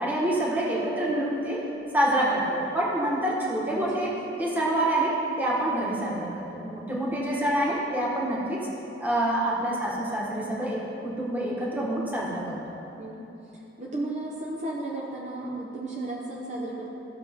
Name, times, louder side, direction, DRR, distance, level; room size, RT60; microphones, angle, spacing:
voice 1, 0.0-1.6 1.9-4.1 4.4-8.7 9.0-12.6, right 1 dB, 10° right, -5 dB, 1.5 m, -27 dB
voice 2, 3.7-4.1 7.3-7.4 9.6-9.8 13.0-13.3 13.8-16.9, right 2 dB, 40° right, -4 dB, 1.0 m, -34 dB
14.5 x 6.3 x 3.7 m, 2.9 s
head